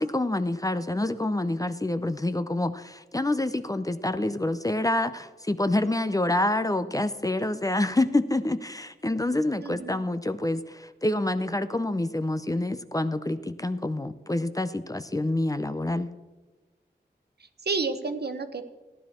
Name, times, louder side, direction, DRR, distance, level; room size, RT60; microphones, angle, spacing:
voice 1, 0.0-16.1, left 1 dB, 20° left, 11 dB, 0.6 m, -27 dB
voice 2, 9.6-10.0 17.4-18.6, right 4 dB, 60° right, 9 dB, 1.0 m, -31 dB
14.5 x 10.5 x 4.3 m, 1.2 s
cardioid pair, 55°, 19 cm